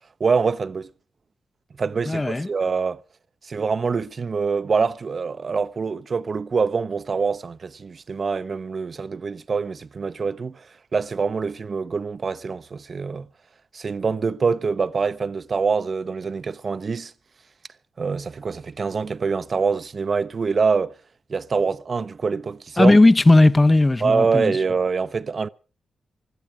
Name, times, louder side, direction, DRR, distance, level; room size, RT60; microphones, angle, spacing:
voice 1, 0.2-0.9 1.8-3.0 3.4-10.7 10.9-13.3 13.7-17.1 18.0-21.0 21.3-22.9 24.0-25.5, right 5 dB, 50° right, 0.7 m, -25 dB
voice 2, 2.1-2.5 22.8-24.6, left 2 dB, 25° left, 0.8 m, -16 dB
21.0 x 13.0 x 4.8 m
cardioid pair, 75°, 0 cm